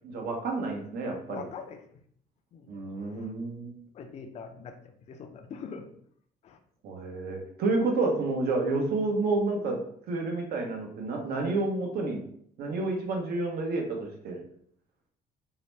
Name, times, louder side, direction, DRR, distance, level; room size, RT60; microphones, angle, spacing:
voice 1, 0.0-1.4 2.7-3.7 6.8-9.8 10.1-12.2 12.6-14.4, right 3 dB, 65° right, 1 dB, 0.8 m, -29 dB
voice 2, 1.3-1.8 2.5-3.3 3.9-5.9 6.4-6.6, left 5 dB, 40° left, 5 dB, 0.4 m, -43 dB
2.8 x 2.1 x 3.1 m, 0.64 s
cardioid pair, 110°, 17 cm